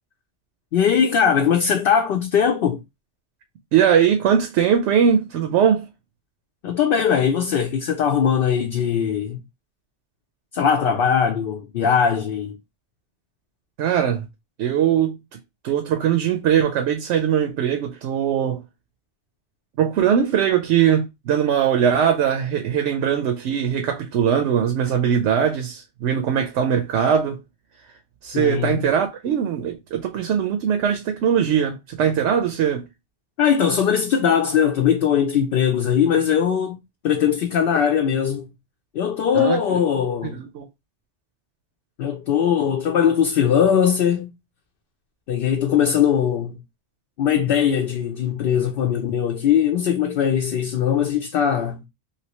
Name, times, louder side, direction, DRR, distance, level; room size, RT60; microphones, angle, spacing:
voice 1, 0.7-2.8 6.6-9.4 10.5-12.6 28.3-28.9 33.4-36.8 37.0-38.5 38.9-40.4 42.0-44.3 45.3-46.6 47.2-51.8, left 8 dB, 65° left, 0.7 m, -20 dB
voice 2, 3.7-5.9 13.8-14.3 14.6-15.2 15.6-18.6 19.8-27.4 28.2-32.9 39.3-39.8 40.3-40.7, right 8 dB, 85° right, 0.9 m, -20 dB
3.2 x 2.6 x 2.9 m
omnidirectional pair, 1.2 m